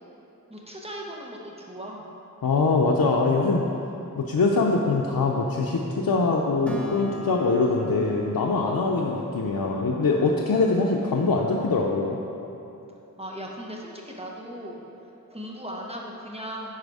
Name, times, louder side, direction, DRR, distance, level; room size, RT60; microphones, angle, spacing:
voice 1, 0.5-2.0 13.2-14.8 15.3-16.7, equal, 20° right, -2 dB, 1.2 m, -37 dB
voice 2, 2.4-3.7 4.1-12.2, left 3 dB, 90° left, -2 dB, 0.6 m, -23 dB
Acoustic guitar, 6.7-10.4, equal, 5° left, 1.1 m, -41 dB
10.5 x 4.2 x 4.8 m, 2.9 s
wide cardioid pair, 55°, 34 cm